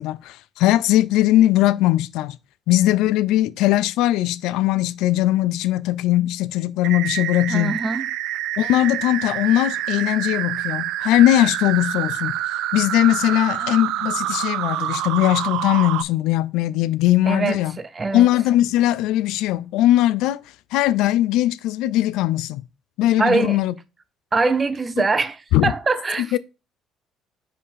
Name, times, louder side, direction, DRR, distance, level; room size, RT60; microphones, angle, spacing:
voice 1, 0.0-2.4 2.7-7.8 8.6-12.4 12.7-17.7 18.1-20.4 20.7-22.6 23.0-23.7 25.5-25.7 26.2-26.4, left 14 dB, 80° left, 0.4 m, -19 dB
sound 1, 6.8-16.0, right 14 dB, 75° right, 0.4 m, -27 dB
voice 2, 7.5-8.1 17.3-18.3 23.2-23.6 24.3-26.4, right 3 dB, 20° right, 0.5 m, -23 dB
5.0 x 4.8 x 5.4 m
cardioid pair, 170°, 0 cm